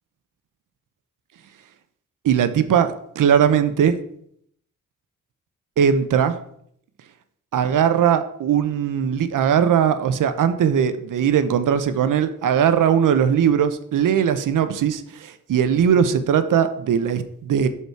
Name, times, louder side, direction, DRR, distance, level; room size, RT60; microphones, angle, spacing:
voice 1, 2.2-4.0 5.8-6.4 7.5-17.7, right 8 dB, 75° right, 11 dB, 0.7 m, -19 dB
6.0 x 5.6 x 4.6 m, 0.68 s
cardioid pair, 90°, 32 cm